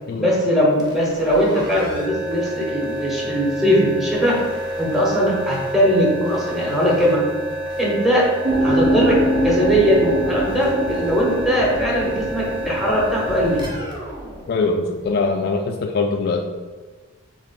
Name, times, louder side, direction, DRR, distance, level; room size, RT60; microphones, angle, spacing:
voice 1, 0.2-4.4 4.8-7.2 7.8-8.3 8.6-13.6, equal, ahead, -4 dB, 1.1 m, -20 dB
sound 1, 0.7-15.3, right 1 dB, 20° right, 0.8 m, -30 dB
sound 2, 8.4-13.8, equal, 55° right, 0.8 m, -24 dB
voice 2, 14.5-16.4, left 3 dB, 50° left, 4 dB, 0.3 m, -22 dB
3.7 x 3.2 x 4.0 m, 1.4 s
head